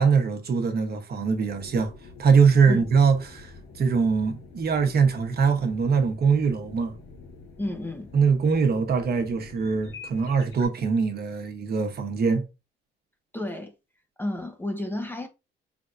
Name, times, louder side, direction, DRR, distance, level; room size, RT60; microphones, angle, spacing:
voice 1, 0.0-1.9 2.2-6.9 8.1-12.5, right 5 dB, 50° right, 1.0 m, -22 dB
sound 1, 1.5-10.6, left 4 dB, 80° left, 1.3 m, -46 dB
voice 2, 7.6-8.1 13.3-13.7 14.2-15.3, left 1 dB, 10° left, 0.7 m, -31 dB
3.7 x 3.5 x 2.5 m
cardioid pair, 90°, 20 cm